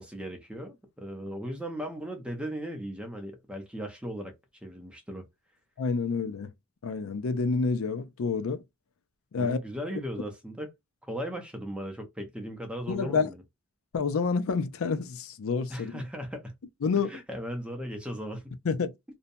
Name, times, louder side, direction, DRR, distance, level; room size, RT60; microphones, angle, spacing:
voice 1, 0.0-4.3 4.6-5.2 9.4-10.7 11.0-13.4 15.7-16.5 17.1-18.5, equal, 5° right, 0.6 m, -37 dB
voice 2, 5.8-6.5 6.8-8.6 9.3-9.6 12.9-13.3 13.9-16.0 16.8-17.1 18.6-18.9, left 4 dB, 70° left, 0.4 m, -28 dB
2.6 x 2.1 x 2.6 m
head